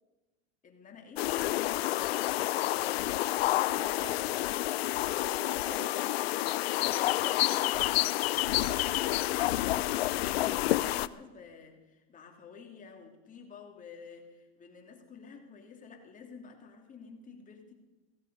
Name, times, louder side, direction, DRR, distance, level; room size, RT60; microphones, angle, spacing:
voice 1, 0.6-1.3 3.4-4.8 6.7-8.2 8.9-17.7, left 5 dB, 25° left, 2 dB, 2.9 m, -50 dB
sound 1, 1.2-11.1, left 16 dB, 80° left, 0.6 m, -29 dB
voice 2, 3.7-4.3 4.8-6.2 8.6-8.9, right 6 dB, 90° right, 8 dB, 2.0 m, -49 dB
16.5 x 16.0 x 5.5 m, 1.1 s
supercardioid pair, 120°, 30 cm